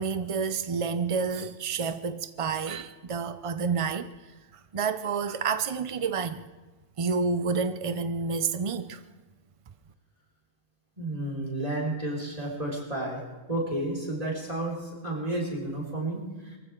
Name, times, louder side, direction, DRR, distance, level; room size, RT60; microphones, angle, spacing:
voice 1, 0.0-4.1 4.7-6.4 7.0-9.0, right 5 dB, 50° right, 0.4 m, -29 dB
voice 2, 11.0-13.2 13.5-16.6, right 1 dB, 30° right, 4.7 m, -31 dB
24.0 x 15.0 x 3.7 m
omnidirectional pair, 1.4 m